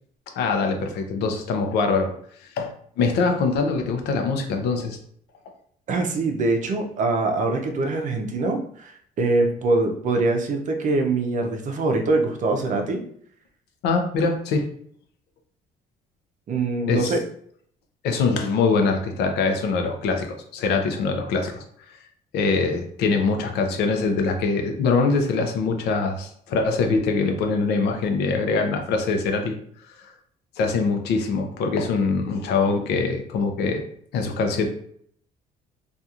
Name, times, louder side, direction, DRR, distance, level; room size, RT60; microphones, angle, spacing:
voice 1, 0.4-2.1 2.6-5.0 13.8-14.7 16.9-17.1 18.0-22.0 22.3-29.5 30.6-33.8 34.1-34.7, left 4 dB, 80° left, 4 dB, 0.6 m, -23 dB
voice 2, 5.9-8.9 9.2-13.0 16.5-17.2, right 3 dB, 50° right, 5 dB, 0.5 m, -23 dB
2.8 x 2.4 x 2.4 m, 0.64 s
cardioid pair, 110°, 17 cm